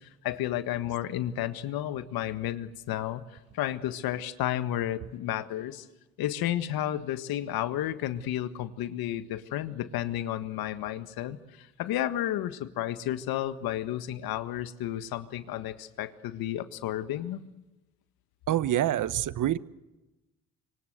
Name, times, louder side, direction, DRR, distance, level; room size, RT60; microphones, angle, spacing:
voice 1, 0.0-5.9 6.2-17.4, left 12 dB, 75° left, 1.7 m, -32 dB
voice 2, 18.5-19.6, right 12 dB, 55° right, 1.1 m, -26 dB
25.5 x 24.5 x 8.1 m
supercardioid pair, 85°, 37 cm